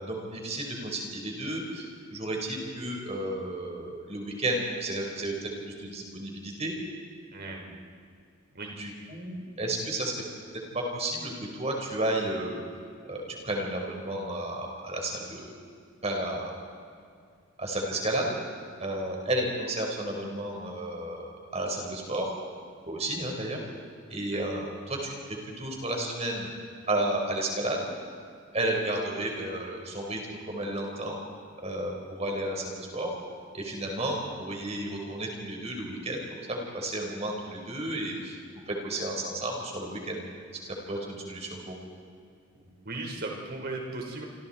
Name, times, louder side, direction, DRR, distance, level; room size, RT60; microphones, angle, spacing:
voice 1, 0.0-6.7 8.8-10.1 10.9-11.3 11.6-12.6 13.1-15.5 16.0-16.5 17.6-18.4 18.8-22.3 22.9-23.6 24.1-25.1 25.6-26.5 26.9-27.9 28.5-30.2 30.4-31.2 31.6-33.1 33.5-38.4 38.7-40.2 40.6-41.9, right 1 dB, 30° right, 0 dB, 4.8 m, -32 dB
voice 2, 7.3-7.7 8.5-8.7 24.3-24.4 42.6-44.2, right 2 dB, 50° right, 0 dB, 4.7 m, -37 dB
28.0 x 26.0 x 4.5 m, 2.3 s
head